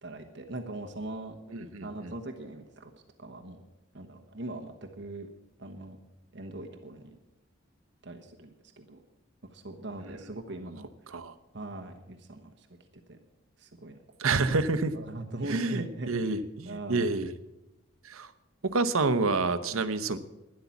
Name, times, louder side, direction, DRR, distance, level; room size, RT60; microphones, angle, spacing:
voice 1, 0.0-1.4 1.6-2.9 3.2-3.6 3.9-5.3 5.6-6.0 6.3-7.2 8.0-9.0 9.5-10.9 11.5-13.2 13.6-14.0 14.9-16.3 16.7-17.1 19.7-19.8, right 2 dB, 55° right, 4 dB, 1.1 m, -41 dB
voice 2, 1.5-2.1 11.1-11.3 14.2-14.9 15.5-17.3 18.0-18.3 18.6-20.2, right 3 dB, 85° right, 11 dB, 0.8 m, -28 dB
12.0 x 10.5 x 7.1 m, 0.98 s
head